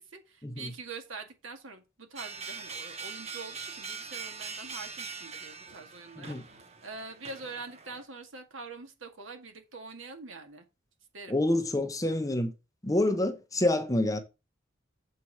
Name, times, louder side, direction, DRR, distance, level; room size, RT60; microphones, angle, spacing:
voice 1, 0.0-10.6 11.1-11.4, right 4 dB, 80° right, 2.0 m, -44 dB
sound 1, 2.2-8.0, right 5 dB, 35° right, 1.1 m, -42 dB
voice 2, 11.3-12.5 12.8-14.2, left 1 dB, 15° left, 1.0 m, -27 dB
7.6 x 4.7 x 5.7 m
head